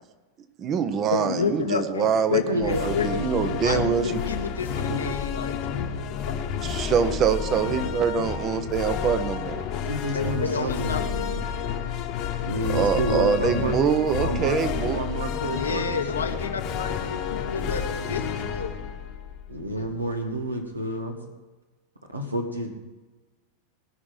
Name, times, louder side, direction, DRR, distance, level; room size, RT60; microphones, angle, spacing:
voice 1, 0.6-4.2 6.6-9.6 12.7-15.0, right 7 dB, 30° right, 11 dB, 1.0 m, -24 dB
voice 2, 1.1-3.1 3.6-5.9 10.1-11.5 15.5-18.7 19.7-19.9, left 5 dB, 75° left, 5 dB, 1.1 m, -30 dB
voice 3, 2.3-5.1 9.7-11.4 12.5-13.7 14.1-14.6 14.9-16.3 17.5-17.7 19.5-21.1 22.1-22.7, right 1 dB, 80° right, 3 dB, 2.0 m, -30 dB
sound 1, 2.6-20.0, left 7 dB, 40° left, 1.2 m, -30 dB
18.0 x 6.2 x 8.1 m, 1.2 s
figure-of-eight pair, 90°, 0 cm